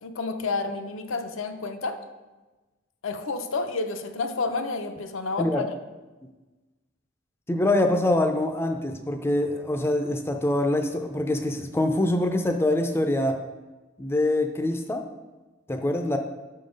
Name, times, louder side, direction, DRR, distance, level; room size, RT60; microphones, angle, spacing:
voice 1, 0.0-2.0 3.0-5.7, left 3 dB, 90° left, 6 dB, 0.6 m, -30 dB
voice 2, 7.5-13.4 14.0-15.1 15.7-16.2, left 1 dB, 10° left, 4 dB, 0.4 m, -24 dB
6.8 x 3.8 x 5.1 m, 1.2 s
head